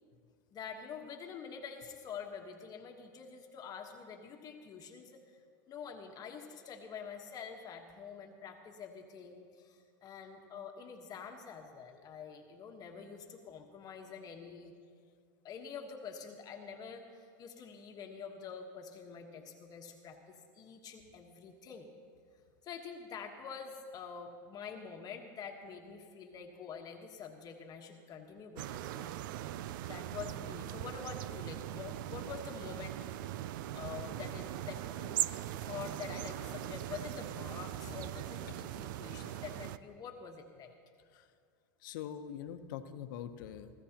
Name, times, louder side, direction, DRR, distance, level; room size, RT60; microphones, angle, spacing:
voice 1, 0.5-5.4 5.7-14.7 15.4-21.9 22.6-29.1 29.9-35.2 35.6-40.7, left 6 dB, 35° left, 3 dB, 1.3 m, -47 dB
sound 1, 28.6-39.8, right 13 dB, 70° right, 0.5 m, -40 dB
voice 2, 41.8-43.7, left 9 dB, 70° left, 9 dB, 1.0 m, -43 dB
24.5 x 14.5 x 2.9 m, 2.2 s
supercardioid pair, 120°, 11 cm